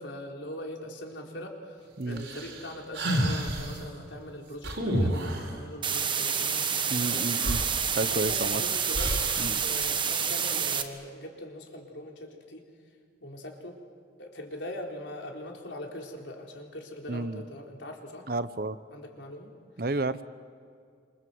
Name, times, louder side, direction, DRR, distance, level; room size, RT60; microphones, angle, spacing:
voice 1, 0.0-1.8 2.1-7.3 8.1-9.1 9.5-12.6 13.2-13.8 14.2-18.3 18.9-19.5, left 1 dB, 80° left, 1 dB, 4.2 m, -41 dB
sound 1, 2.2-3.8 4.6-5.6 7.1-7.2 7.4-8.4 8.9-9.5, right 1 dB, 80° right, 4.4 m, -29 dB
sound 2, 5.8-10.8, right 7 dB, 25° right, 1.4 m, -28 dB
voice 2, 6.9-7.6 8.0-8.6 9.4-9.6 17.1-17.4 18.3-18.8 19.8-20.2, right 2 dB, 50° right, 13 dB, 0.9 m, -31 dB
27.5 x 27.5 x 7.9 m, 2.2 s
head